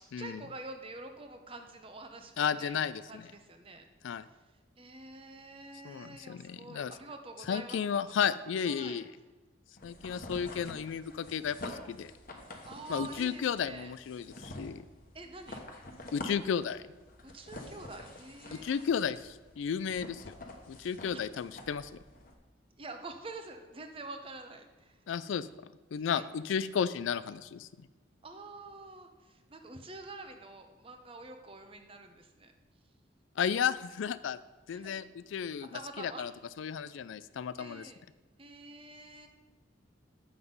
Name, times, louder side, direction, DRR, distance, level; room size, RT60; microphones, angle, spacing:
voice 1, 0.0-4.4 4.8-8.0 8.7-9.0 12.6-13.9 15.1-15.6 17.2-18.9 21.1-21.2 22.8-25.0 26.1-26.3 28.2-32.5 34.7-35.0 35.7-36.3 37.6-38.0 38.4-39.3, right 3 dB, 25° right, 6 dB, 0.7 m, -47 dB
voice 2, 2.4-3.3 4.0-4.2 5.8-6.9 7.5-9.1 9.8-12.1 12.9-14.8 16.1-16.8 18.5-20.3 20.7-21.9 25.1-25.5 25.9-27.9 33.4-34.4 34.7-36.3 36.6-37.9, left 7 dB, 75° left, 15 dB, 0.3 m, -33 dB
sound 1, 9.8-22.3, left 1 dB, 45° left, 1.1 m, -47 dB
7.9 x 5.8 x 5.3 m, 1.2 s
head